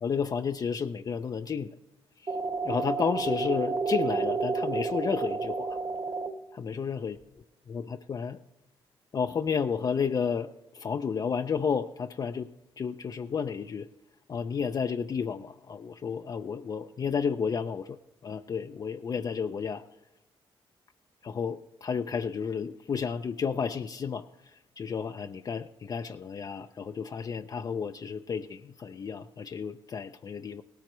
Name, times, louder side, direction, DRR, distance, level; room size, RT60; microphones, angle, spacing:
voice 1, 0.0-1.7 2.2-2.3 2.6-5.8 6.5-7.2 7.7-8.4 9.1-12.5 12.8-13.9 14.3-18.0 18.2-19.8 21.2-24.2 24.8-30.6, left 6 dB, 40° left, 7 dB, 0.4 m, -32 dB
sound 1, 2.3-6.3, right 4 dB, 40° right, 1.4 m, -30 dB
18.0 x 13.5 x 3.1 m, 0.96 s
cardioid pair, 115°, 10 cm